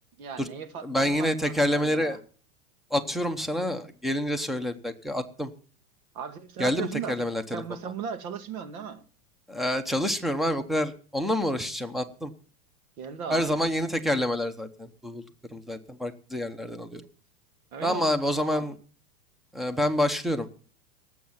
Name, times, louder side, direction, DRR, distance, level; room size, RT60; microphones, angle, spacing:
voice 1, 0.2-2.2 6.1-7.2 7.5-9.0 13.0-13.6 17.7-18.7, right 7 dB, 65° right, 2.3 m, -37 dB
voice 2, 0.8-2.2 2.9-5.5 6.6-7.6 9.5-12.3 13.3-15.2 15.5-17.0 17.8-18.7 19.5-20.5, left 1 dB, ahead, 0.9 m, -27 dB
18.0 x 7.7 x 7.2 m
supercardioid pair, 140°, 45 cm